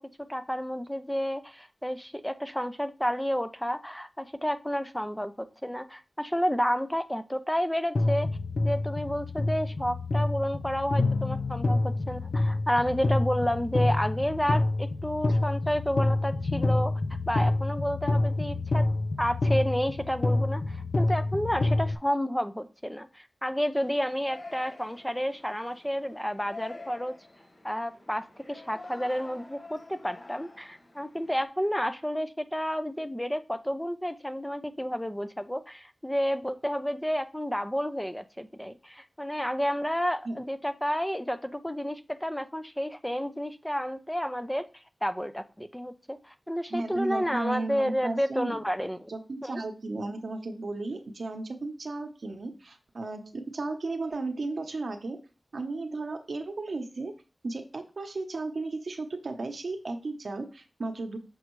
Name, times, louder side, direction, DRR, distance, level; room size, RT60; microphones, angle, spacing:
voice 1, 0.2-8.3 8.6-17.0 17.3-18.9 19.2-27.1 27.6-44.7 45.0-49.1 49.4-49.6, equal, 5° left, 10 dB, 0.5 m, -30 dB
sound 1, 8.0-22.0, left 2 dB, 70° left, 0.5 m, -27 dB
Yell, 23.7-31.5, left 2 dB, 45° left, 1.2 m, -47 dB
voice 2, 46.7-48.6 49.1-55.2 55.5-57.1 57.4-61.2, right 2 dB, 70° right, 4 dB, 0.8 m, -34 dB
6.2 x 5.4 x 3.1 m, 0.33 s
wide cardioid pair, 80°, 0 cm